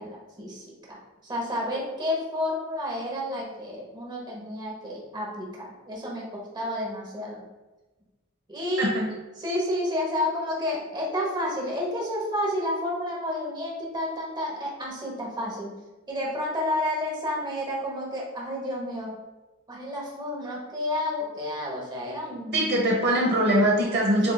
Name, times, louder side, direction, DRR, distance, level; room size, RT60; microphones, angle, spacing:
voice 1, 0.0-7.4 8.5-9.0 9.4-15.7 16.1-19.2 19.7-22.8, left 1 dB, 20° right, -3 dB, 1.0 m, -30 dB
voice 2, 22.5-24.3, right 1 dB, 50° right, -2 dB, 0.9 m, -22 dB
7.4 x 2.6 x 2.3 m, 1.1 s
head